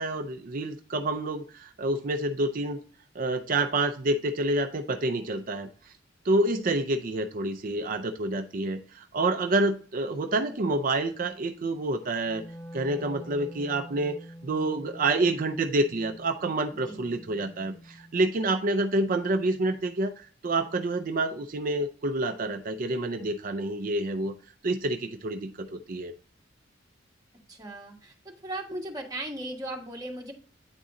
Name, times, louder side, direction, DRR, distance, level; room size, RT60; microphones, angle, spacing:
voice 1, 0.0-2.8 3.1-5.9 6.2-12.4 12.7-14.2 14.4-24.3 24.6-26.1, right 2 dB, 45° right, 7 dB, 0.5 m, -28 dB
Wind instrument woodwind instrument, 12.2-18.4, equal, 5° left, 0.7 m, -46 dB
voice 2, 27.5-28.1 28.4-30.3, right 1 dB, 20° right, 1 dB, 1.5 m, -37 dB
9.7 x 4.0 x 3.7 m, 0.42 s
head